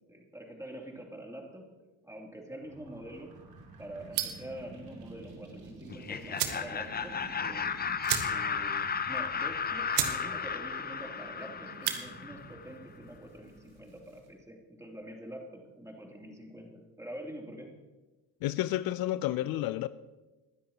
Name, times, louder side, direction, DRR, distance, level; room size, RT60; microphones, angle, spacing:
voice 1, 0.1-1.6 2.0-3.3 3.8-7.8 8.2-17.7, right 1 dB, 10° right, 0 dB, 2.8 m, -46 dB
sound 1, 2.6-14.3, right 2 dB, 65° right, 3.2 m, -50 dB
sound 2, 4.1-4.5 5.9-6.0 6.3-6.7 7.1-7.2 7.4-7.5 8.0-8.6 9.0-9.1 9.6-9.7 9.9-10.2 10.5-10.9 11.7-12.0, right 11 dB, 90° right, 1.2 m, -32 dB
Laughter, 5.9-12.7, left 6 dB, 25° left, 0.6 m, -34 dB
voice 2, 18.4-19.9, left 14 dB, 65° left, 15 dB, 0.5 m, -30 dB
21.0 x 10.0 x 2.9 m, 1.1 s
supercardioid pair, 80°, 39 cm